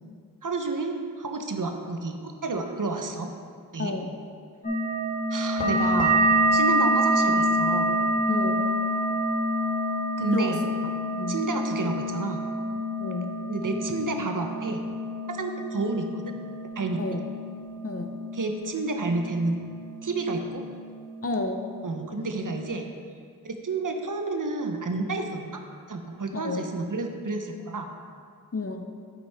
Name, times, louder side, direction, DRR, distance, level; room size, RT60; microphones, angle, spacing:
voice 1, 0.4-3.3 3.7-3.9 5.3-6.2 6.5-7.9 10.2-10.6 11.3-12.4 13.5-14.8 15.3-16.3 16.8-17.2 18.3-19.6 20.0-20.6 21.8-22.9 23.4-25.6 25.9-27.9, right 3 dB, 55° right, 4 dB, 0.7 m, -30 dB
voice 2, 3.8-4.1 8.3-8.6 10.3-10.6 11.2-11.4 13.0-13.3 17.0-17.2 17.8-18.1 21.2-21.6 26.3-26.6 28.5-28.9, left 3 dB, 40° left, 5 dB, 0.6 m, -30 dB
sound 1, 4.6-19.8 20.1-20.9 21.2-21.9 22.3-22.7, right 1 dB, 20° left, 1.7 m, -27 dB
8.7 x 6.0 x 3.4 m, 2.2 s
wide cardioid pair, 55°, 37 cm